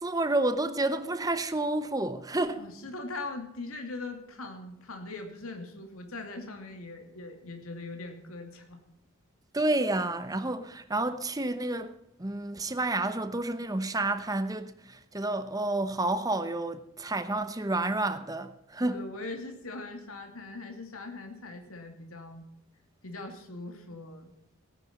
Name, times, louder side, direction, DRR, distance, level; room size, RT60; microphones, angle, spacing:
voice 1, 0.0-2.6 9.5-19.1, right 2 dB, 15° right, 0.9 m, -30 dB
voice 2, 2.6-8.8 18.9-22.5 23.0-24.3, left 2 dB, 90° left, 2.5 m, -41 dB
17.5 x 9.7 x 4.2 m
head